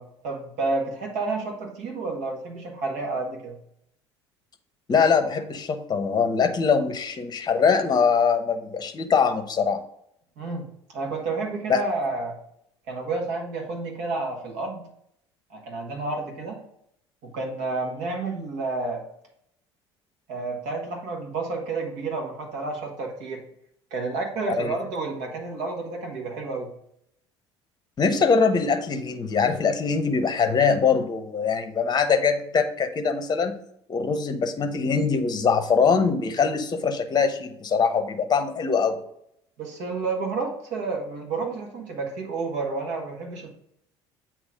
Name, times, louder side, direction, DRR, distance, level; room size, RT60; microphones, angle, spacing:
voice 1, 0.0-3.6 10.4-12.4 12.9-14.8 15.5-16.6 17.2-19.0 20.3-23.4 23.9-26.7 39.6-43.5, right 3 dB, 60° right, 1 dB, 1.8 m, -30 dB
voice 2, 4.9-9.8 11.7-11.8 24.6-24.8 28.0-33.5 33.9-39.0, left 5 dB, 30° left, 8 dB, 0.9 m, -22 dB
8.0 x 3.1 x 5.1 m, 0.72 s
figure-of-eight pair, 60°, 14 cm